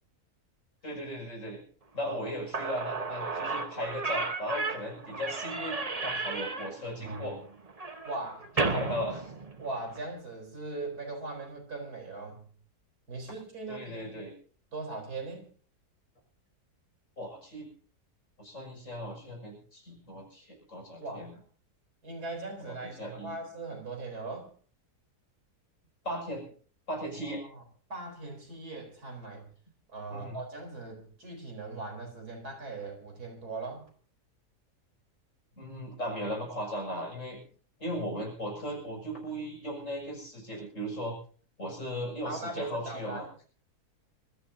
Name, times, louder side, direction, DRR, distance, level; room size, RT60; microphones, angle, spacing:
voice 1, 0.8-1.6 1.9-7.4 8.6-9.3 13.7-14.3 17.2-17.7 18.4-21.3 22.6-23.4 26.0-26.4 26.9-27.4 30.1-30.4 35.6-37.4 37.8-41.2 41.6-43.3, equal, 50° left, 0 dB, 6.6 m, -37 dB
Slam / Squeak, 2.2-2.3 2.5-10.0, right 3 dB, 25° right, 1.0 m, -34 dB
voice 2, 8.0-8.5 9.6-12.5 13.1-14.2 14.7-15.5 21.0-21.3 22.0-24.5 27.1-27.6 27.9-29.4 29.9-33.8 42.2-43.3, right 3 dB, 70° right, 1 dB, 4.4 m, -39 dB
27.0 x 14.0 x 2.7 m, 0.42 s
omnidirectional pair, 1.7 m